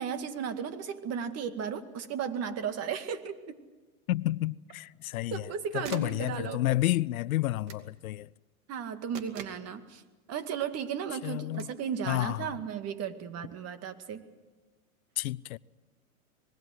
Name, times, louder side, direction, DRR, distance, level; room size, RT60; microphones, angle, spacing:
voice 1, 0.0-3.6 5.3-6.6 8.7-10.0 10.3-14.2, right 7 dB, 35° right, 2.1 m, -35 dB
voice 2, 4.1-5.5 5.7-8.3 11.2-11.7 12.1-12.5 15.2-15.6, left 16 dB, 75° left, 0.7 m, -30 dB
sound 1, 5.0-5.5 5.8-6.2 7.7-7.9 9.1-9.7 11.5-11.8, right 7 dB, 55° right, 2.6 m, -44 dB
25.5 x 21.0 x 7.8 m
hypercardioid pair, 110°, 42 cm